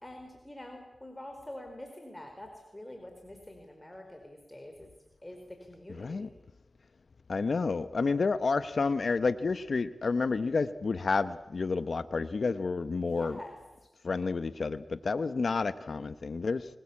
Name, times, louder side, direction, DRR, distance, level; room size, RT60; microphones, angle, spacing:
voice 1, 0.0-4.9 5.2-6.3 13.0-13.6, left 1 dB, 15° left, 3 dB, 4.6 m, -46 dB
voice 2, 6.0-6.3 7.3-13.4 14.0-16.7, left 4 dB, 65° left, 13 dB, 0.8 m, -30 dB
24.5 x 20.0 x 8.6 m, 1.1 s
cardioid pair, 50°, 0 cm